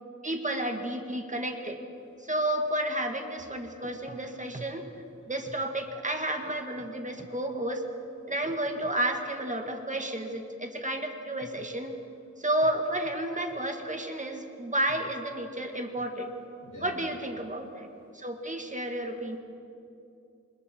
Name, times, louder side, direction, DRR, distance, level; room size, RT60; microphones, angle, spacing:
voice 1, 0.2-1.8 2.2-4.9 5.3-7.8 8.3-12.0 12.4-16.3 16.8-17.9 18.1-19.4, right 1 dB, 25° right, 3 dB, 2.1 m, -31 dB
voice 2, 16.6-16.9 18.0-18.3, left 1 dB, 80° left, -2 dB, 6.9 m, -49 dB
27.0 x 26.0 x 4.6 m, 2.6 s
wide cardioid pair, 105°, 30 cm